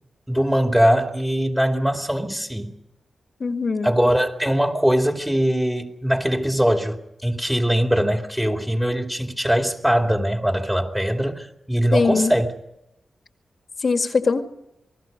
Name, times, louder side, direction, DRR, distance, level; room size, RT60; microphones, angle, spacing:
voice 1, 0.3-2.7 3.8-12.5, equal, 10° right, 4 dB, 2.5 m, -21 dB
voice 2, 3.4-3.9 11.9-12.3 13.8-14.4, left 4 dB, 55° left, 6 dB, 2.0 m, -21 dB
28.5 x 20.0 x 5.3 m, 0.85 s
cardioid pair, 70°, 0 cm